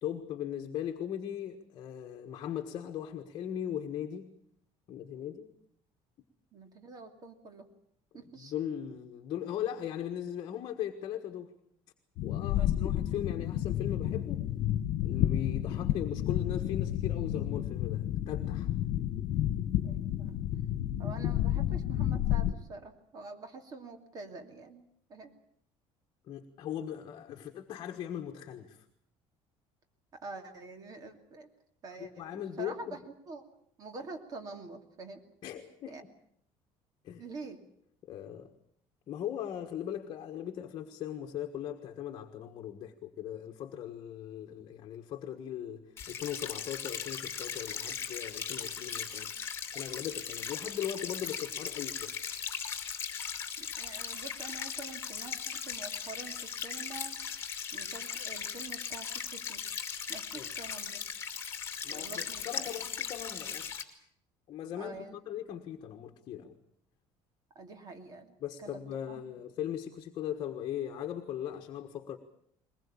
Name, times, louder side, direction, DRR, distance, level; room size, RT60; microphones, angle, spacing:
voice 1, 0.0-4.3 4.9-5.5 8.4-11.5 12.2-14.4 15.0-18.7 26.3-28.8 32.0-33.0 35.4-36.1 37.0-37.2 38.0-38.5 39.1-49.3 49.7-52.2 60.3-60.5 61.8-63.7 64.5-66.5 68.4-72.2, left 10 dB, 40° left, 4 dB, 1.5 m, -39 dB
voice 2, 6.5-7.7 8.1-8.5 12.6-12.7 19.8-20.4 21.0-24.8 25.1-25.3 30.1-31.5 31.8-33.4 33.8-35.2 35.9-36.0 37.2-37.6 53.6-57.2 57.7-59.6 60.1-61.0 61.9-62.7 64.8-65.2 67.5-69.2, right 3 dB, 35° right, 7 dB, 2.7 m, -46 dB
sound 1, 12.2-22.5, left 12 dB, 60° left, 1.4 m, -31 dB
sound 2, 46.0-63.8, left 7 dB, 20° left, 2.4 m, -38 dB
21.5 x 20.5 x 8.7 m, 0.69 s
cardioid pair, 175°, 12 cm